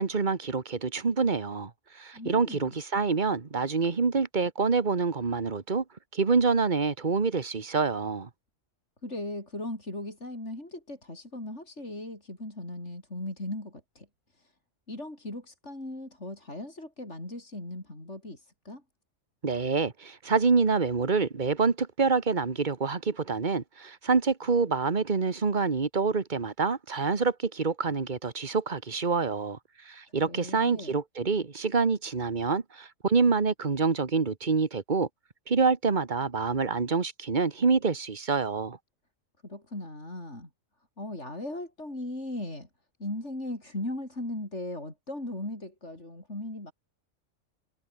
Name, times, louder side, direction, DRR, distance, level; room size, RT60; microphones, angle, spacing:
voice 1, 0.0-1.7 1.9-5.8 6.1-8.3 19.4-29.6 29.8-35.1 35.5-38.8, right 4 dB, 35° right, 1.7 m, -26 dB
voice 2, 2.1-2.8 9.0-14.5 14.9-18.8 30.2-31.0 39.4-40.5 41.0-42.7 43.0-46.7, left 1 dB, 60° left, 7.1 m, -38 dB
omnidirectional pair, 1.3 m